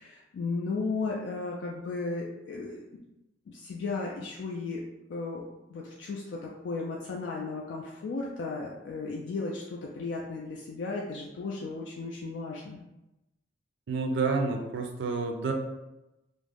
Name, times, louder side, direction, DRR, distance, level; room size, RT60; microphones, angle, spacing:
voice 1, 0.0-2.8 3.5-4.8 5.1-5.4 5.7-12.8, left 3 dB, 65° left, -3 dB, 0.3 m, -35 dB
voice 2, 13.9-15.5, right 4 dB, 70° right, 3 dB, 0.4 m, -29 dB
2.3 x 2.0 x 3.2 m, 0.97 s
head